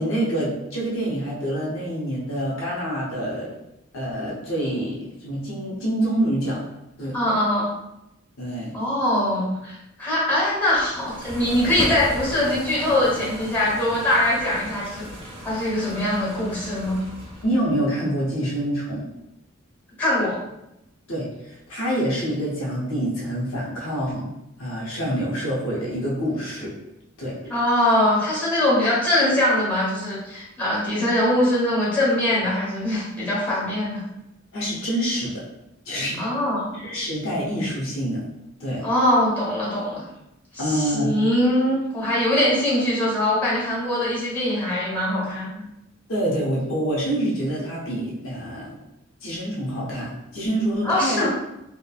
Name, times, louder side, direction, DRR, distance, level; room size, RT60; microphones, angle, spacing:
voice 1, 0.0-3.5 3.9-6.6 7.0-7.2 8.4-8.7 17.4-19.1 21.1-24.3 24.6-26.8 27.2-27.4 34.5-35.4 35.9-36.2 36.7-38.2 38.6-38.9 40.6-41.1 46.1-48.8 49.2-51.3, right 1 dB, 85° left, -5 dB, 0.8 m, -26 dB
voice 2, 7.1-7.7 8.7-15.0 15.4-17.0 20.0-20.4 27.5-34.0 36.2-36.8 38.8-40.0 40.6-45.6 50.8-51.3, left 1 dB, 10° left, -8 dB, 1.0 m, -22 dB
sound 1, 10.7-17.7, equal, 30° right, 0.6 m, -36 dB
2.9 x 2.1 x 2.3 m, 0.88 s
head